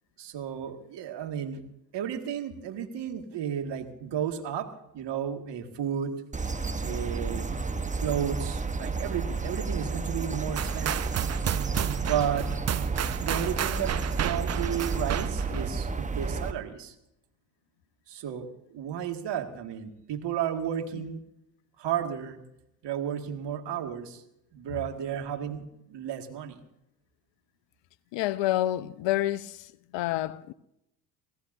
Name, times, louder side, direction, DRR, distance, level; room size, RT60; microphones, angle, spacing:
voice 1, 0.2-1.6 1.9-6.2 6.8-7.5 8.0-11.1 12.0-12.5 13.2-16.9 18.1-21.2 21.8-22.4 22.8-24.2 24.5-26.6, right 9 dB, 55° right, 2.2 m, -33 dB
sound 1, 6.3-16.5, right 4 dB, 15° right, 1.1 m, -32 dB
sound 2, 10.6-15.7, right 10 dB, 30° right, 0.7 m, -31 dB
voice 2, 28.1-29.6 29.9-30.5, left 14 dB, 60° left, 0.9 m, -28 dB
27.0 x 17.5 x 2.7 m
hypercardioid pair, 60°, 49 cm